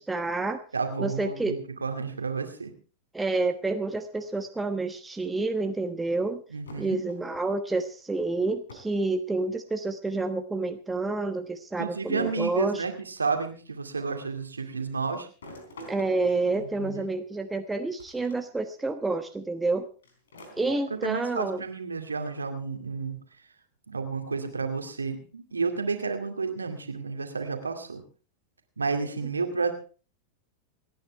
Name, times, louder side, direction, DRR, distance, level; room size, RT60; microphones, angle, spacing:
voice 1, 0.0-0.6 1.0-1.6 3.1-6.4 6.8-12.8 15.9-19.9 20.6-21.6, right 3 dB, 10° right, 6 dB, 1.1 m, -29 dB
voice 2, 0.7-2.7 6.5-7.0 11.8-15.3 16.6-17.1 20.7-23.2 23.9-28.0 28.8-29.7, right 4 dB, 75° right, 5 dB, 2.2 m, -31 dB
sound 1, 6.7-7.6 8.7-9.0 9.3-9.9 11.0-11.1 12.2-13.5 15.4-17.3 18.0-18.4 18.8-18.9 20.0-21.5, left 1 dB, 65° left, 3.8 m, -49 dB
28.0 x 9.8 x 3.4 m, 0.37 s
figure-of-eight pair, 90°, 0 cm